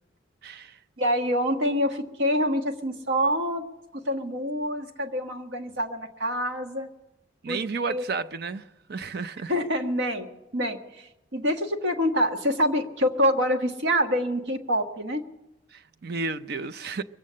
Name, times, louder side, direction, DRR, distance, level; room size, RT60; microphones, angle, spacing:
voice 1, 0.4-0.8 7.4-8.6 8.9-9.5 15.7-17.0, right 4 dB, 55° right, 0.6 m, -32 dB
voice 2, 1.0-3.6 3.9-6.9 7.5-7.6 7.9-8.0 9.5-15.2, equal, 90° right, 1.4 m, -26 dB
22.5 x 8.4 x 7.5 m
head